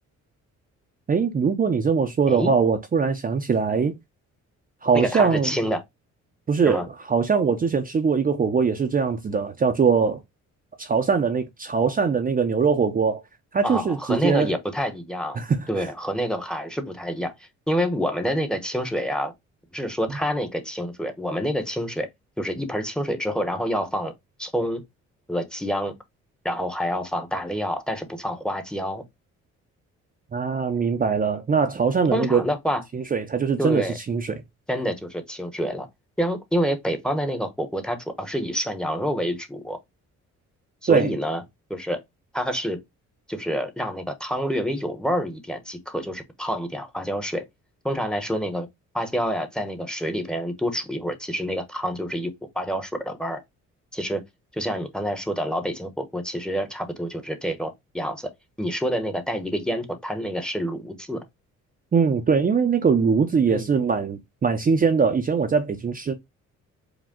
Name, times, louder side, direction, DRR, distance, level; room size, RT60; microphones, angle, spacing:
voice 1, 1.1-4.0 4.8-5.5 6.5-10.2 10.8-13.2 13.5-14.5 15.4-15.9 30.3-32.4 32.9-34.4 40.9-41.1 61.9-66.1, right 5 dB, 30° right, 0.6 m, -22 dB
voice 2, 4.9-5.8 6.6-6.8 13.6-15.4 15.7-17.3 17.7-19.3 19.7-22.1 22.4-24.1 24.4-24.8 25.3-25.9 26.4-29.0 32.1-32.8 33.6-34.0 34.7-35.9 36.2-39.8 40.8-41.4 41.7-42.0 42.3-42.8 43.3-47.4 47.8-48.7 48.9-53.4 53.9-54.2 54.5-58.3 58.6-61.2 63.5-63.7, equal, 5° left, 0.9 m, -27 dB
5.0 x 2.2 x 3.6 m
cardioid pair, 90°, 30 cm